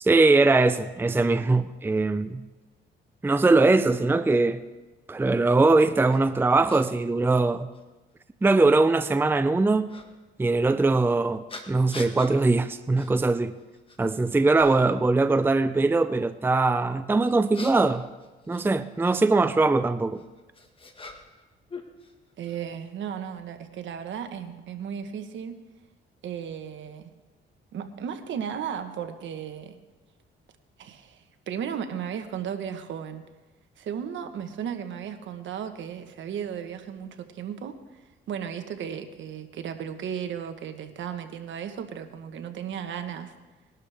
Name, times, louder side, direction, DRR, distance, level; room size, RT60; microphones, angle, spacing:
voice 1, 0.0-2.4 3.2-4.6 5.1-7.7 8.4-9.9 10.4-13.5 14.0-18.0 18.5-20.2, right 3 dB, 10° right, 0.5 m, -21 dB
sound 1, 6.1-6.2 6.7-6.8 7.7-7.8 9.9-10.1 11.5-12.3 12.9-13.1 13.6-14.1 14.5-15.0 17.2-19.2 20.1-21.4 21.7-22.6, left 3 dB, 25° left, 1.6 m, -43 dB
voice 2, 22.4-25.6 26.2-27.1 27.7-29.8 30.8-33.2 33.8-37.7 38.3-43.3, right 8 dB, 70° right, 1.3 m, -35 dB
20.5 x 12.0 x 3.5 m
cardioid pair, 90°, 20 cm